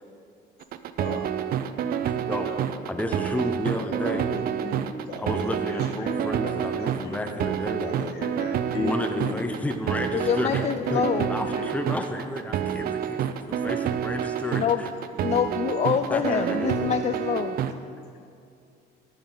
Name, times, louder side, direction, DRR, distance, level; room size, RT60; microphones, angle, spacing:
sound 1, 0.6-17.7, right 9 dB, 65° right, 0.6 m, -28 dB
voice 1, 2.0-2.5 2.9-4.3 5.2-7.9 8.8-10.6 10.9-11.0 11.3-13.2 13.5-14.9 16.1-16.9, left 1 dB, 10° left, 6 dB, 0.7 m, -32 dB
voice 2, 3.7-6.2 6.4-7.4 7.8-9.4 10.6-11.7, left 3 dB, 70° left, 2 dB, 1.9 m, -36 dB
voice 3, 10.1-11.3 14.6-14.8 15.2-17.6, left 8 dB, 40° left, 9 dB, 0.4 m, -25 dB
14.5 x 10.0 x 3.9 m, 2.4 s
cardioid pair, 110°, 17 cm